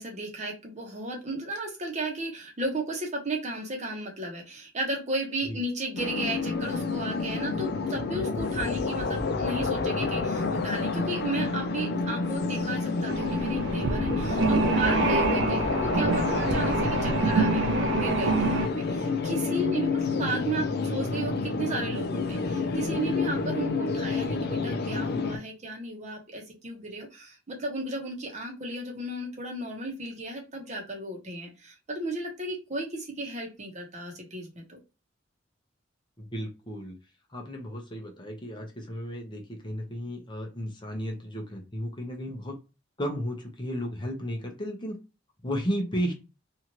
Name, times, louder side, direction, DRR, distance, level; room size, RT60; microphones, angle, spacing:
voice 1, 0.0-34.6, right 2 dB, 40° right, 1 dB, 0.9 m, -34 dB
sound 1, 6.0-25.4, left 4 dB, 55° left, 0.4 m, -29 dB
sound 2, 13.1-18.7, right 3 dB, 65° right, 0.4 m, -26 dB
voice 2, 36.2-36.9 37.3-42.5 43.0-44.9 45.4-46.1, equal, 25° left, 1 dB, 0.7 m, -34 dB
2.7 x 2.4 x 2.9 m, 0.29 s
head